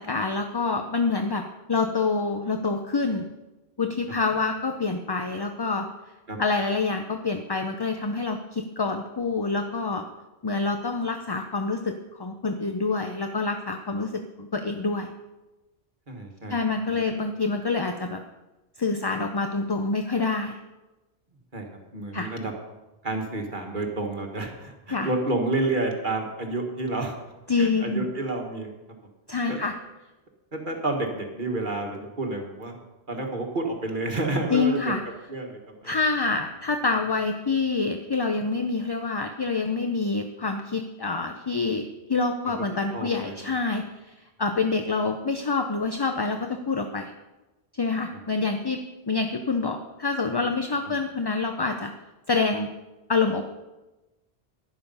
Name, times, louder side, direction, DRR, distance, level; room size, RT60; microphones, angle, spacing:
voice 1, 0.0-3.3 3.8-5.9 6.4-10.0 10.4-15.1 16.5-18.2 18.8-20.6 22.1-22.3 24.9-25.1 27.5-28.1 29.3-29.7 34.5-35.0 35.8-41.8 42.1-44.1 44.4-47.1 47.7-51.9 52.3-52.7 53.1-53.4, left 4 dB, 30° left, 6 dB, 0.6 m, -27 dB
voice 2, 16.1-16.6 16.9-17.0 21.5-21.7 21.9-22.5 23.0-27.2 27.6-28.7 29.5-29.6 30.5-32.8 33.1-35.0 35.3-36.0 42.5-42.6 42.9-43.5, right 2 dB, 50° right, 2 dB, 1.8 m, -30 dB
11.5 x 11.0 x 5.5 m, 1.1 s
omnidirectional pair, 1.1 m